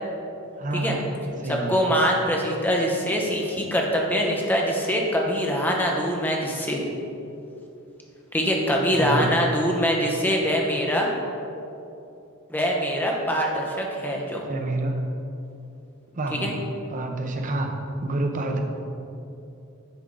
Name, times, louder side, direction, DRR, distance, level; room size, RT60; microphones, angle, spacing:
voice 1, 0.6-1.9 8.9-9.3 14.5-15.1 16.1-16.6 16.9-17.8 18.0-18.6, right 2 dB, 40° right, 3 dB, 0.6 m, -28 dB
voice 2, 1.5-6.8 8.3-11.1 12.5-14.4 16.4-16.5, equal, 10° left, -1 dB, 0.8 m, -23 dB
9.8 x 3.6 x 3.8 m, 2.8 s
head